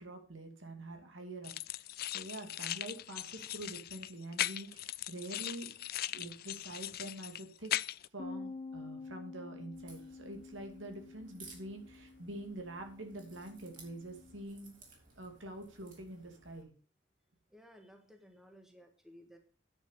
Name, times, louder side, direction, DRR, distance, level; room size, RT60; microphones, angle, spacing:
voice 1, 0.0-5.7 6.1-7.7 8.1-14.7 15.2-16.7, right 1 dB, 75° right, 4 dB, 2.6 m, -46 dB
sound 1, 1.4-8.1, left 13 dB, 50° left, 0.4 m, -39 dB
Bass guitar, 8.2-14.4, left 3 dB, 35° left, 1.0 m, -49 dB
Crack, 9.7-16.6, right 3 dB, 45° right, 3.6 m, -59 dB
voice 2, 17.5-19.4, equal, ahead, 3 dB, 1.6 m, -57 dB
9.8 x 6.1 x 6.9 m, 0.40 s
head